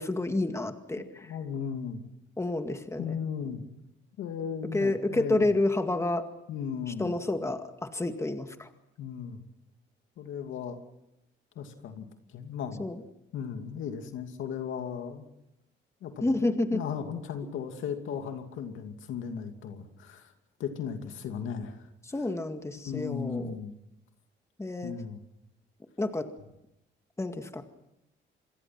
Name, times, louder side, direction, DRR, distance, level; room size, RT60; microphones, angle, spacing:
voice 1, 0.0-1.3 2.4-3.2 4.7-6.3 6.9-8.7 12.8-13.0 16.2-16.8 22.1-23.5 24.6-24.9 26.0-26.3 27.2-27.8, left 2 dB, 15° left, 7 dB, 2.1 m, -29 dB
voice 2, 1.2-2.0 3.0-3.6 4.2-5.5 6.5-7.1 9.0-9.4 10.2-10.8 11.6-12.1 12.3-12.9 13.3-15.2 16.0-16.4 16.7-20.3 20.6-21.9 22.8-23.7 24.8-25.2, left 7 dB, 80° left, 6 dB, 2.6 m, -36 dB
27.0 x 21.5 x 6.0 m, 0.86 s
cardioid pair, 90°, 20 cm